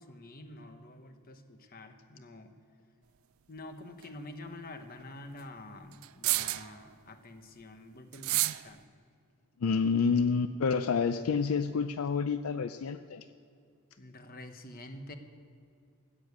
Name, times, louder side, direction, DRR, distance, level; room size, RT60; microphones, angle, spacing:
voice 1, 0.0-2.5 3.5-8.8 14.0-15.2, left 2 dB, 45° left, 7 dB, 1.1 m, -47 dB
sound 1, 4.0-4.1 6.0-6.8 8.1-8.7, right 17 dB, 70° right, 0.4 m, -29 dB
voice 2, 9.6-13.2, left 5 dB, 70° left, 11 dB, 0.4 m, -28 dB
13.5 x 9.0 x 8.1 m, 2.4 s
head